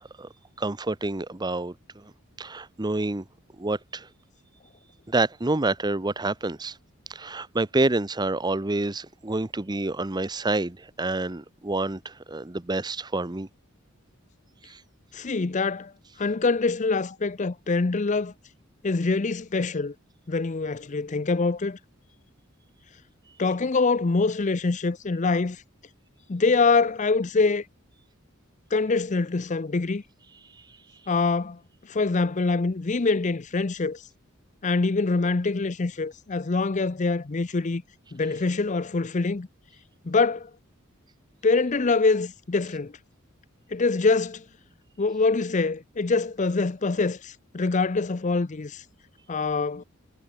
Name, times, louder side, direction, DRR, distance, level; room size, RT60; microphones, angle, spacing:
voice 1, 0.6-2.0 2.4-3.2 3.6-4.1 5.1-6.8 7.1-13.5 14.6-14.8, right 2 dB, 20° right, 0.8 m, -28 dB
voice 2, 15.1-15.9 16.2-18.3 18.8-19.9 20.3-21.8 23.4-25.6 26.3-27.6 28.7-30.0 31.1-31.6 31.9-34.0 34.6-37.8 38.1-39.5 40.0-40.5 41.4-42.9 43.7-44.4 45.0-48.8 49.3-49.8, left 3 dB, 35° left, 0.6 m, -24 dB
head